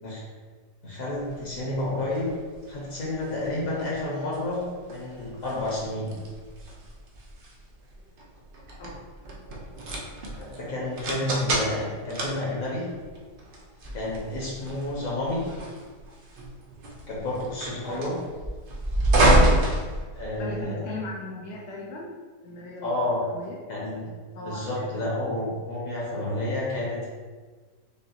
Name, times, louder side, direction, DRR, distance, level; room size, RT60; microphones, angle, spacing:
voice 1, 0.8-2.3 2.7-6.1 10.6-12.9 13.9-15.5 17.1-18.1 20.2-20.9 22.8-23.2 23.7-24.1 24.4-27.1, left 1 dB, 60° left, -4 dB, 1.3 m, -30 dB
sound 1, 1.2-20.6, right 1 dB, 75° right, 0.5 m, -28 dB
voice 2, 20.4-22.2 22.4-23.6 24.3-25.0, left 2 dB, 75° left, -2 dB, 1.1 m, -38 dB
5.5 x 2.3 x 2.8 m, 1.5 s
omnidirectional pair, 1.8 m